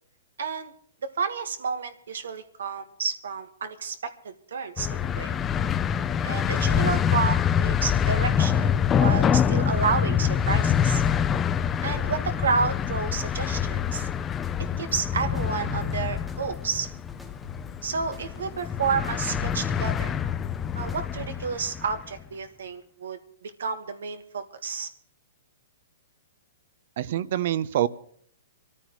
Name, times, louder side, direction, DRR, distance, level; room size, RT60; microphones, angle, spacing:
voice 1, 0.4-0.7 1.2-5.4 6.2-11.0 11.8-14.1 14.8-16.9 17.8-20.2 20.8-24.9, right 5 dB, 90° right, 8 dB, 1.5 m, -30 dB
sound 1, 4.8-22.0, left 8 dB, 15° left, 0.5 m, -25 dB
sound 2, 14.0-21.6, equal, ahead, 1.4 m, -44 dB
voice 2, 27.0-27.9, right 12 dB, 55° right, 16 dB, 0.7 m, -25 dB
24.5 x 14.0 x 3.1 m, 0.62 s
hypercardioid pair, 155°, 0 cm